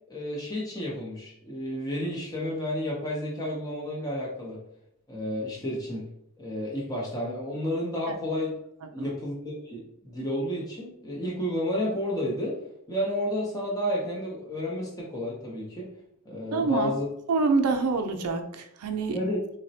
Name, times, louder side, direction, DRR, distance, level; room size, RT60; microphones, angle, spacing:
voice 1, 0.1-4.6 5.1-6.1 6.4-8.5 8.9-12.6 12.9-15.9 16.3-17.0 19.1-19.4, left 1 dB, 15° left, -4 dB, 0.6 m, -31 dB
voice 2, 16.5-16.9 17.3-19.2, right 4 dB, 80° right, 5 dB, 0.4 m, -26 dB
3.9 x 2.1 x 2.7 m, 0.76 s
head